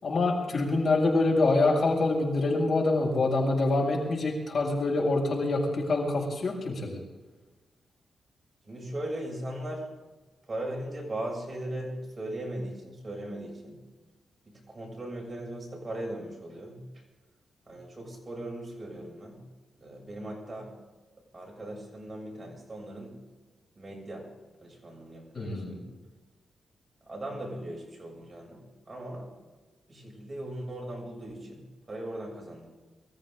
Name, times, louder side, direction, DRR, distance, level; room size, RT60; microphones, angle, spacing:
voice 1, 0.0-7.0 25.3-25.7, left 2 dB, 50° left, -2 dB, 6.7 m, -26 dB
voice 2, 8.6-9.9 10.5-13.8 14.5-16.8 17.7-19.4 19.8-20.7 21.3-23.2 23.7-24.3 24.6-26.0 27.1-29.3 29.9-32.7, right 1 dB, 25° right, -2 dB, 7.2 m, -38 dB
24.5 x 14.5 x 3.9 m, 1.2 s
wide cardioid pair, 135°, 0 cm